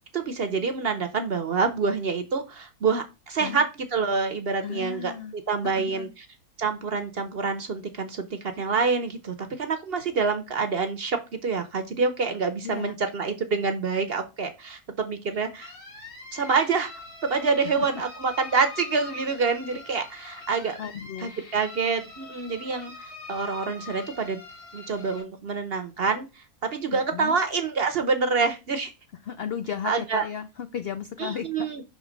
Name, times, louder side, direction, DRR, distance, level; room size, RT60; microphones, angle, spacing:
voice 1, 0.1-5.1 5.5-6.2 6.6-15.7 16.3-16.9 17.2-20.8 21.2-24.4 24.7-26.3 26.6-28.9 29.8-30.2 31.2-31.8, right 4 dB, 50° right, 7 dB, 0.8 m, -27 dB
voice 2, 4.6-5.3 5.6-6.1 12.6-13.0 17.6-17.9 20.8-21.3 26.9-27.4 29.2-31.7, left 8 dB, 85° left, 10 dB, 0.5 m, -34 dB
sound 1, 15.6-25.2, left 4 dB, 65° left, 3.4 m, -44 dB
6.3 x 3.3 x 5.0 m, 0.27 s
omnidirectional pair, 1.6 m